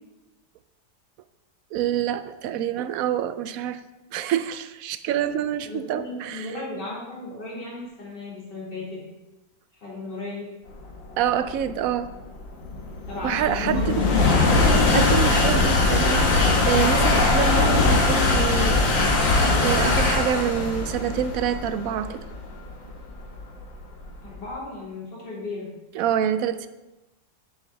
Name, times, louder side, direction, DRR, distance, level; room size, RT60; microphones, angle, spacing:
voice 1, 1.7-3.8 4.1-6.5 11.2-12.1 13.2-14.1 14.6-18.9 19.3-22.2 25.9-26.7, right 9 dB, 80° right, 11 dB, 0.7 m, -27 dB
voice 2, 5.6-9.0 9.8-10.5 13.1-14.3 24.2-25.7, left 2 dB, 65° left, -6 dB, 4.1 m, -35 dB
sound 1, 11.0-24.4, left 3 dB, 80° left, 2.2 m, -21 dB
7.9 x 6.1 x 6.8 m, 1.0 s
omnidirectional pair, 2.0 m